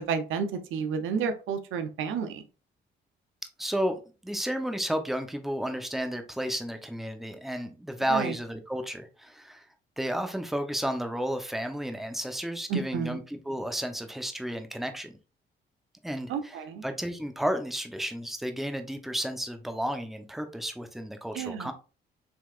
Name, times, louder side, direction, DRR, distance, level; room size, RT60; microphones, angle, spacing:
voice 1, 0.0-2.4 8.1-8.3 12.7-13.2 16.3-16.8 21.3-21.7, right 6 dB, 85° right, 8 dB, 0.7 m, -31 dB
voice 2, 3.6-9.7 10.0-15.2 16.0-21.7, equal, ahead, 7 dB, 0.8 m, -32 dB
6.2 x 3.3 x 2.5 m, 0.34 s
cardioid pair, 90°, 20 cm